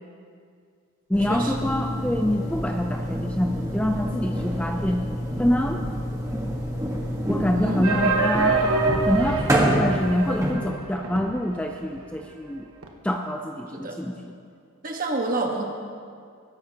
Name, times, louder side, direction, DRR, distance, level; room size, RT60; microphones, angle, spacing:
voice 1, 1.1-5.0 5.4-5.8 7.3-8.7 9.1-12.7 13.0-14.4, left 1 dB, 5° left, 3 dB, 0.4 m, -26 dB
sound 1, 1.1-10.5, equal, 15° right, 1.3 m, -28 dB
sound 2, 7.8-11.6 11.8-11.9 12.2-12.3 12.8-12.9, right 3 dB, 75° right, 1.2 m, -25 dB
voice 2, 14.8-15.7, right 2 dB, 40° right, 1 dB, 1.4 m, -28 dB
20.5 x 10.5 x 2.9 m, 2.2 s
head